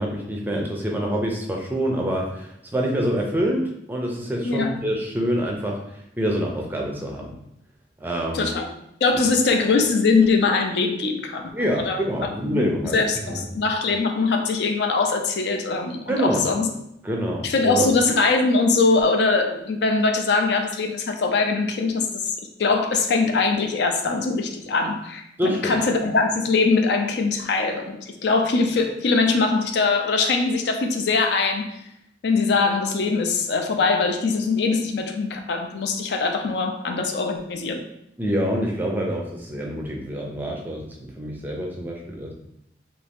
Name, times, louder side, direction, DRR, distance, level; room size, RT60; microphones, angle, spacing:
voice 1, 0.0-5.8 6.2-7.3 8.0-8.5 11.5-13.5 16.1-16.5 17.0-17.9 25.4-25.8 38.2-42.3, equal, 10° right, 0 dB, 0.4 m, -26 dB
voice 2, 4.4-4.8 8.3-8.7 9.0-11.5 11.8-12.0 12.4-16.7 17.4-22.3 22.6-31.8 32.2-37.8, left 4 dB, 70° left, 4 dB, 0.4 m, -22 dB
2.8 x 2.6 x 3.4 m, 0.80 s
head